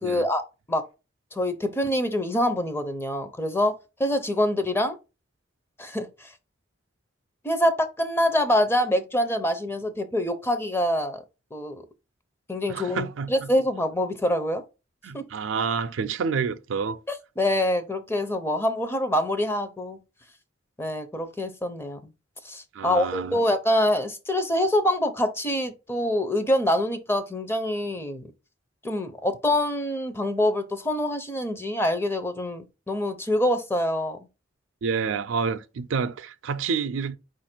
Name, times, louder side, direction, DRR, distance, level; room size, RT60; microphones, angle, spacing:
voice 1, 0.0-0.4 0.7-0.8 1.3-5.0 5.8-6.3 7.4-11.2 11.5-11.8 12.5-14.6 15.1-15.2 17.1-20.0 20.8-22.1 22.4-28.3 28.8-34.2, left 1 dB, 10° left, 0.5 m, -25 dB
voice 2, 12.7-13.5 15.0-17.0 22.7-23.4 34.8-37.2, right 5 dB, 75° right, 0.4 m, -28 dB
4.7 x 2.5 x 4.3 m
head